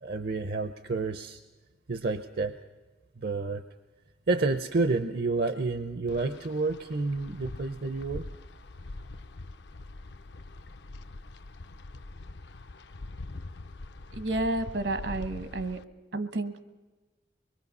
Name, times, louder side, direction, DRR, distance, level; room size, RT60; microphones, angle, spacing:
voice 1, 0.0-1.4 1.9-2.6 3.2-3.6 4.3-8.2, right 3 dB, 60° right, 9 dB, 0.7 m, -29 dB
Wind, 6.1-15.8, left 2 dB, 70° left, 0.6 m, -43 dB
voice 2, 14.1-15.8 16.1-16.6, right 2 dB, 75° right, 9 dB, 1.3 m, -31 dB
24.5 x 22.0 x 5.5 m, 1.2 s
head